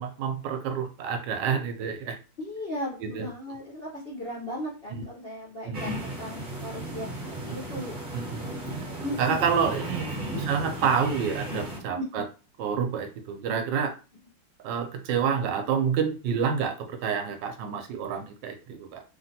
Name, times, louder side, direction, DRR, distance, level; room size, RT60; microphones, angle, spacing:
voice 1, 0.0-2.2 3.0-3.3 4.9-5.0 5.6-5.8 8.1-8.9 9.2-12.2 12.6-13.9 14.6-19.0, right 6 dB, 75° right, 6 dB, 1.1 m, -28 dB
voice 2, 2.4-7.1 7.4-7.9 9.0-9.5 11.9-12.2, equal, 75° left, -5 dB, 0.5 m, -36 dB
sound 1, 5.7-11.8, right 1 dB, 50° right, 0.6 m, -35 dB
3.1 x 2.5 x 2.6 m, 0.33 s
omnidirectional pair, 2.1 m